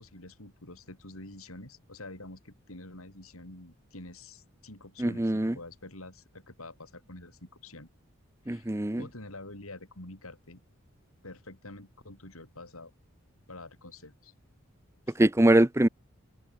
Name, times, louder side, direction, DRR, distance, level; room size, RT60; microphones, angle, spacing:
voice 1, 0.0-7.9 8.5-8.7 9.0-10.6 11.2-12.9 13.5-14.3 15.1-15.2, left 2 dB, 80° left, 5.5 m, -47 dB
voice 2, 5.0-5.5 8.5-9.0 15.2-15.9, right 1 dB, 10° right, 0.6 m, -23 dB
head